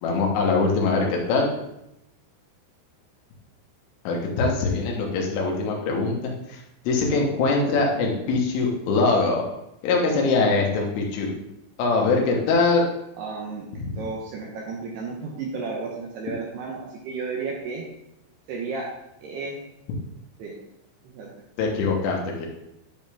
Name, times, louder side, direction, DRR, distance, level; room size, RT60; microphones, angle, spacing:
voice 1, 0.0-1.5 4.1-6.6 6.9-9.4 9.8-11.3 11.8-12.9 21.6-22.5, left 3 dB, 80° left, 0 dB, 3.9 m, -22 dB
voice 2, 13.2-17.8 18.5-18.9 19.2-19.6 20.4-20.6 21.0-21.3, right 4 dB, 70° right, -2 dB, 2.7 m, -33 dB
10.5 x 5.4 x 3.5 m, 0.83 s
omnidirectional pair, 5.6 m